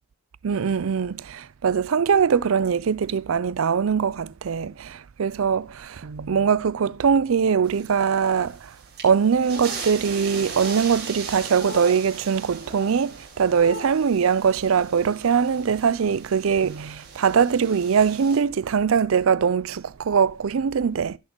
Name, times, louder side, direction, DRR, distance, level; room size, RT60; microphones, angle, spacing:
voice 1, 0.4-8.6 9.0-21.2, right 6 dB, 70° right, 0.4 m, -22 dB
sound 1, 7.6-18.4, right 6 dB, 50° right, 5.0 m, -39 dB
sound 2, 9.4-9.9 10.4-10.9 11.4-12.0 12.6-13.0 13.4-14.0, left 3 dB, 45° left, 1.5 m, -39 dB
17.0 x 6.6 x 2.9 m
head